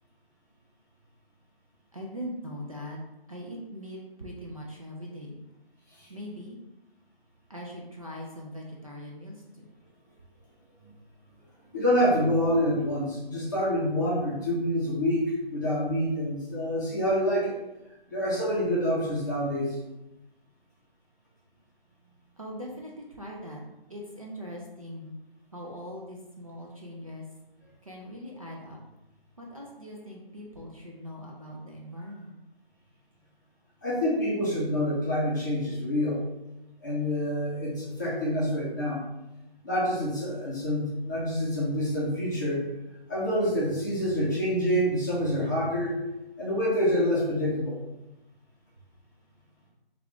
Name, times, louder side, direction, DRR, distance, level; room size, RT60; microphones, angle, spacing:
voice 1, 1.9-3.0 3.3-5.4 6.1-6.6 7.5-9.7 22.4-23.6 23.9-25.1 25.5-27.3 27.8-28.8 29.4-32.4, equal, 35° right, -2 dB, 0.4 m, -41 dB
voice 2, 11.7-17.5 18.1-19.8 33.8-36.2 36.8-39.0 39.6-42.6 43.1-45.9 46.4-47.8, equal, 20° left, -8 dB, 0.6 m, -27 dB
3.4 x 2.4 x 3.5 m, 0.96 s
figure-of-eight pair, 155°, 30 cm